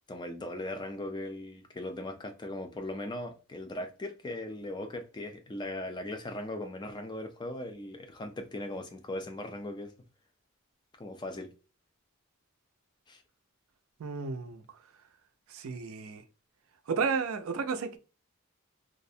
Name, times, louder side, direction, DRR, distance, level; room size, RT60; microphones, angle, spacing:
voice 1, 0.1-9.9 11.0-11.5 13.1-13.2, left 1 dB, 20° left, 0.4 m, -39 dB
voice 2, 14.0-14.6 15.5-16.2 16.9-18.0, right 5 dB, 70° right, 0.4 m, -32 dB
2.4 x 2.0 x 2.6 m
head